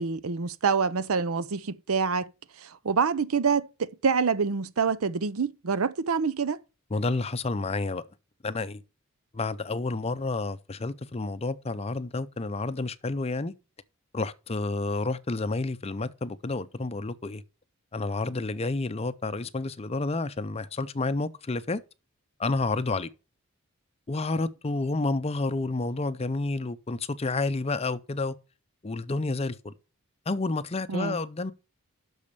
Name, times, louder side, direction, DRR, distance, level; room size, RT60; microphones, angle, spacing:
voice 1, 0.0-2.3 2.6-6.6 30.9-31.2, right 5 dB, 75° right, 0.6 m, -26 dB
voice 2, 6.9-8.0 8.4-8.8 9.3-13.5 14.1-17.4 17.9-21.8 22.4-23.1 24.1-28.3 28.8-29.7 30.3-31.5, left 3 dB, 30° left, 0.5 m, -30 dB
8.5 x 6.4 x 6.7 m
head